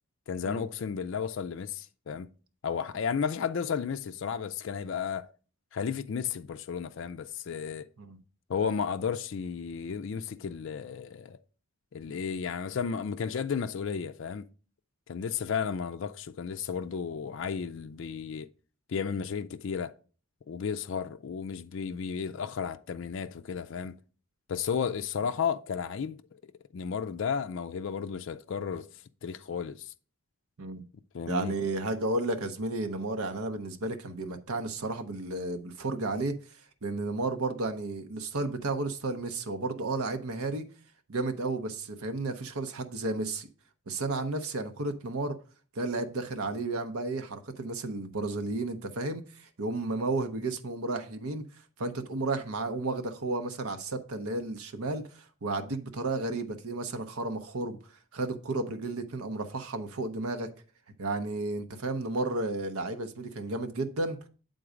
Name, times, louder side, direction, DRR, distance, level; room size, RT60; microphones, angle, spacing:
voice 1, 0.3-2.3 2.6-5.3 5.7-7.9 8.5-11.4 11.9-14.5 15.1-18.5 18.9-19.9 20.5-24.0 24.5-26.4 26.7-28.9 29.2-29.9 31.1-31.5, left 6 dB, 60° left, 0.4 m, -33 dB
voice 2, 31.3-36.4 36.8-40.7 41.1-43.5 43.9-45.4 45.8-51.5 51.8-57.8 58.1-60.5 61.0-64.2, right 2 dB, 80° right, 0.8 m, -32 dB
7.9 x 3.9 x 5.0 m
head